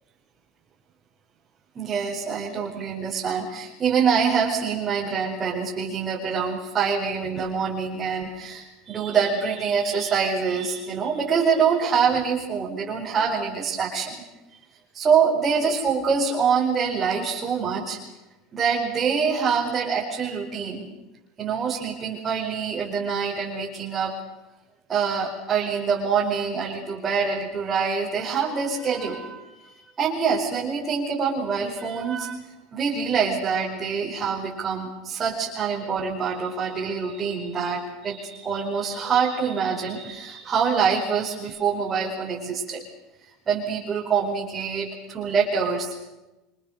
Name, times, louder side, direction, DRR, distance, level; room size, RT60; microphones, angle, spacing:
voice 1, 1.7-14.2 14.9-18.0 18.5-20.9 21.4-24.2 24.9-32.4 32.7-42.8 43.5-46.1, right 6 dB, 25° right, -3 dB, 4.9 m, -25 dB
27.5 x 25.5 x 6.7 m, 1.0 s
supercardioid pair, 140°, 0 cm